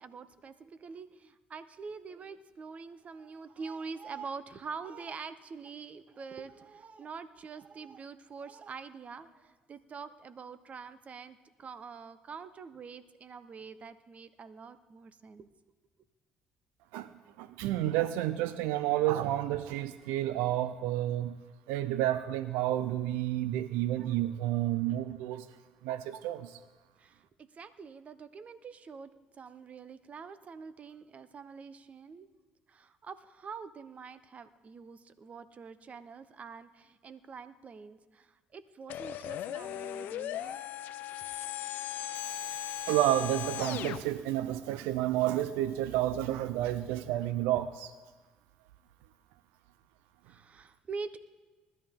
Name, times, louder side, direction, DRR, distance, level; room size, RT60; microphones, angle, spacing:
voice 1, 0.0-15.5 27.0-32.3 32.7-40.6 50.2-51.2, right 5 dB, 45° right, 13 dB, 0.9 m, -45 dB
voice 2, 17.4-21.3 21.7-25.5 25.8-26.6 42.1-47.9, right 13 dB, 85° right, 13 dB, 0.5 m, -30 dB
sound 1, 38.9-44.0, left 11 dB, 70° left, 0.7 m, -38 dB
20.5 x 13.0 x 3.7 m, 1.3 s
supercardioid pair, 70°, 3 cm